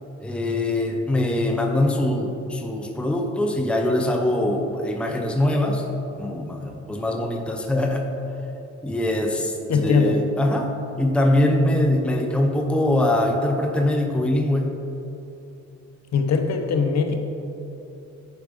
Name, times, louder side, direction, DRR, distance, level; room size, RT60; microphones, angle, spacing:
voice 1, 0.2-5.8 6.2-8.1 8.8-10.7 11.0-14.7, left 1 dB, 5° left, 2 dB, 0.7 m, -23 dB
voice 2, 9.7-10.2 16.1-17.2, left 5 dB, 60° left, 5 dB, 0.9 m, -21 dB
10.5 x 4.6 x 3.7 m, 3.0 s
cardioid pair, 90°, 30 cm